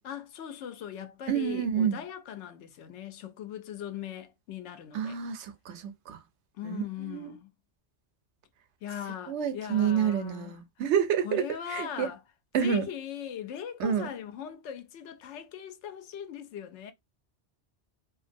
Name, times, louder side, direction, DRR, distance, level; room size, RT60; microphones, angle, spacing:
voice 1, 0.0-5.2 6.5-7.5 8.8-10.5 11.2-12.2 12.6-16.9, left 9 dB, 90° left, 0.9 m, -40 dB
voice 2, 1.3-2.0 4.9-6.2 6.6-7.3 9.3-11.4 11.7-12.1 12.5-12.8 13.8-14.1, right 8 dB, 85° right, 0.9 m, -28 dB
2.9 x 2.4 x 2.5 m
omnidirectional pair, 1.1 m